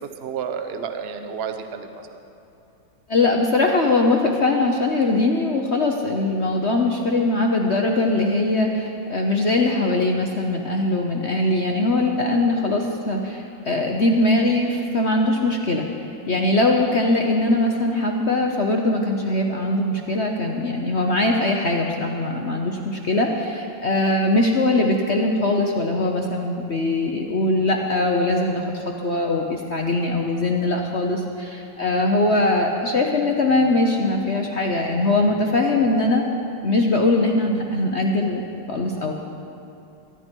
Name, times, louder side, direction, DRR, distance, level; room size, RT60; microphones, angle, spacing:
voice 1, 0.0-2.2, right 6 dB, 65° right, 7 dB, 0.6 m, -31 dB
voice 2, 3.1-15.9 16.3-36.2 36.6-39.1, left 2 dB, 60° left, 1 dB, 0.7 m, -21 dB
23.0 x 11.5 x 4.5 m, 2.7 s
omnidirectional pair, 2.4 m